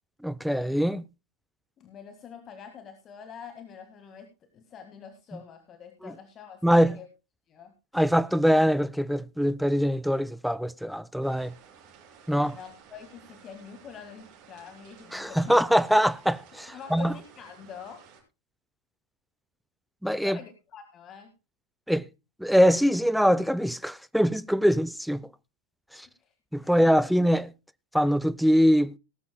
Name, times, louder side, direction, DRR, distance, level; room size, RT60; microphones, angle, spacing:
voice 1, 0.2-1.1 6.0-6.1 6.6-7.0 7.9-11.5 12.3-12.6 15.1-17.1 20.0-20.4 21.9-22.1 22.4-25.3 25.9-26.1 26.5-27.5 27.9-29.0, equal, ahead, 0.5 m, -23 dB
voice 2, 1.8-7.1 7.5-7.7 12.5-15.6 16.7-18.0 20.2-21.3 26.2-26.3 26.6-27.1, left 7 dB, 30° left, 1.8 m, -45 dB
sound 1, 11.2-18.2, right 7 dB, 40° right, 6.4 m, -54 dB
18.5 x 12.5 x 2.2 m
figure-of-eight pair, 90°, 0 cm